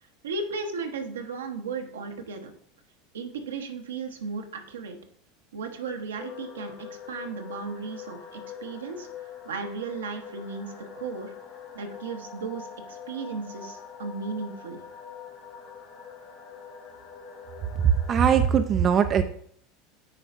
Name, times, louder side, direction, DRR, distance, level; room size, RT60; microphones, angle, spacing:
voice 1, 0.2-2.5 3.1-5.0 5.5-9.1 9.4-11.3 11.7-14.8, right 4 dB, 80° right, 4 dB, 0.9 m, -35 dB
sound 1, 6.2-18.5, left 7 dB, 55° left, 2.0 m, -44 dB
voice 2, 17.8-19.2, right 8 dB, 35° right, 8 dB, 0.4 m, -20 dB
8.9 x 4.9 x 2.5 m, 0.62 s
hypercardioid pair, 80°, 0 cm